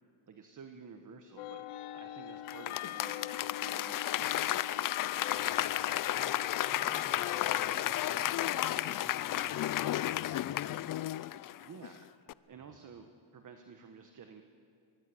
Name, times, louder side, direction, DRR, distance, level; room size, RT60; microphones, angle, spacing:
voice 1, 0.3-1.6 1.9-4.8 11.6-12.1 12.5-14.4, right 6 dB, 40° right, 6 dB, 1.6 m, -52 dB
sound 1, 1.4-7.7, left 13 dB, 85° left, 1.0 m, -43 dB
Applause / Crowd, 2.5-11.9 12.3-12.4, left 13 dB, 45° left, 0.5 m, -33 dB
voice 2, 5.3-10.9 12.6-12.7, equal, 20° right, 2 dB, 6.9 m, -53 dB
24.0 x 22.5 x 8.1 m, 2.4 s
cardioid pair, 105°, 49 cm